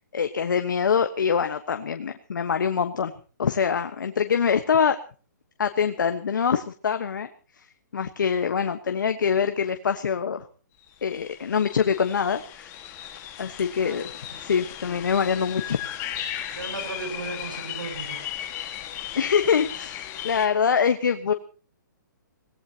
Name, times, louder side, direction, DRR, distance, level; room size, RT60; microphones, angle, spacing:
voice 1, 0.1-3.1 3.4-5.0 5.6-7.3 7.6-7.7 7.9-10.5 11.0-12.7 13.4-14.0 14.4-15.8 19.1-21.3, left 6 dB, 75° left, 7 dB, 1.3 m, -24 dB
sound 1, 10.8-10.9 11.1-20.5, left 11 dB, 20° left, 1.8 m, -36 dB
voice 2, 16.5-18.4, right 3 dB, 90° right, 6 dB, 7.7 m, -36 dB
26.0 x 18.0 x 2.9 m, 0.37 s
hypercardioid pair, 155°, 10 cm